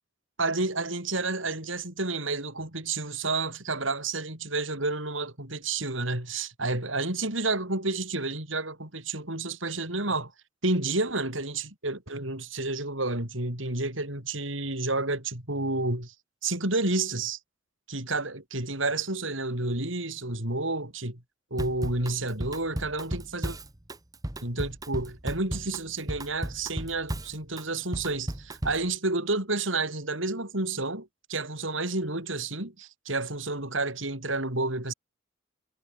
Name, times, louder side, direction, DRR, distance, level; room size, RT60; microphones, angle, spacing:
voice 1, 0.4-10.3 10.6-16.1 16.4-17.4 17.9-21.2 21.5-23.6 24.4-34.9, right 2 dB, 75° right, 6.7 m, -30 dB
Drum kit / Drum, 21.6-28.9, right 1 dB, 20° right, 1.1 m, -35 dB
head